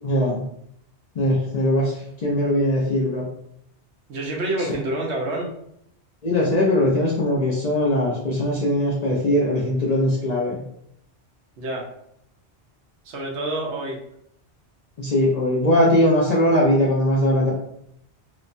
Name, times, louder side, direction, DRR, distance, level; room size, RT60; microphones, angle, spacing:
voice 1, 0.0-0.4 1.2-3.3 6.2-10.6 15.0-17.5, left 1 dB, 50° left, -5 dB, 0.5 m, -20 dB
voice 2, 4.1-5.5 11.6-11.9 13.0-14.0, right 1 dB, 75° right, 0 dB, 1.0 m, -27 dB
3.0 x 2.1 x 2.5 m, 0.73 s
omnidirectional pair, 1.2 m